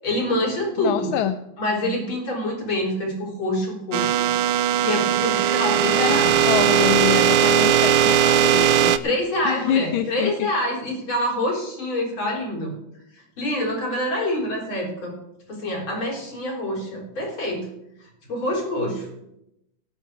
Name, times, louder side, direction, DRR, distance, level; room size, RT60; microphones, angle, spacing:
voice 1, 0.0-1.1 1.6-4.3 4.8-6.4 9.0-12.7 13.4-15.2 15.5-17.7 18.3-19.1, left 1 dB, 70° left, -1 dB, 4.6 m, -26 dB
voice 2, 0.8-1.4 6.0-8.9 9.4-10.5, left 10 dB, 90° left, 9 dB, 1.5 m, -26 dB
sound 1, 3.9-9.0, right 9 dB, 85° right, 1.6 m, -18 dB
18.5 x 8.6 x 4.7 m, 0.84 s
omnidirectional pair, 2.3 m